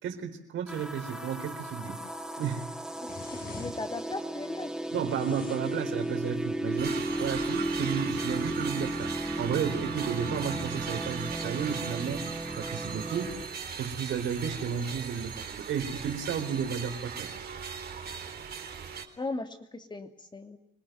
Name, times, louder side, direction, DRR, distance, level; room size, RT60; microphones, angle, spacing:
voice 1, 0.0-2.0 2.4-2.7 4.9-12.3 12.6-13.4 13.8-17.3, right 7 dB, 80° right, 6 dB, 4.1 m, -33 dB
sound 1, 0.7-13.5, right 1 dB, 5° right, 2.3 m, -35 dB
sound 2, 2.9-4.2 4.8-6.7 7.7-8.4, left 4 dB, 50° left, 6.3 m, -48 dB
voice 2, 3.0-4.7 19.2-20.6, left 2 dB, 20° left, 7 dB, 2.8 m, -38 dB
sound 3, 6.8-19.0, right 6 dB, 50° right, 3.9 m, -38 dB
26.0 x 18.5 x 9.4 m, 0.84 s
cardioid pair, 90°, 20 cm